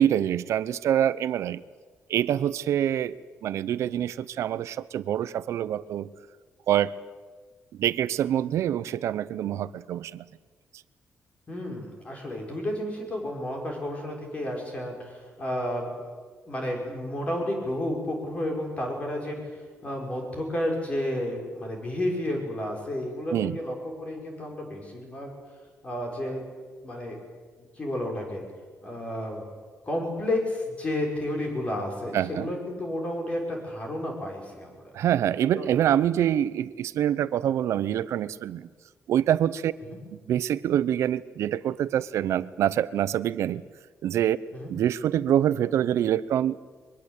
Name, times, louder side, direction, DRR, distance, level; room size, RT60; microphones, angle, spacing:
voice 1, 0.0-1.6 2.1-3.2 3.4-6.1 6.7-7.0 7.7-10.3 23.3-23.6 32.1-32.5 34.9-38.7 39.1-39.7 40.3-43.6 44.0-44.4 44.7-46.7, right 10 dB, 80° right, 16 dB, 0.8 m, -25 dB
voice 2, 11.5-16.2 16.5-19.4 19.8-25.3 25.8-26.4 26.8-27.2 27.8-28.4 28.8-29.5 29.8-34.9 35.5-35.7 39.9-40.0 44.5-44.7, left 1 dB, 25° left, 1 dB, 6.2 m, -31 dB
23.0 x 22.5 x 8.4 m, 1.5 s
wide cardioid pair, 160°, 5 cm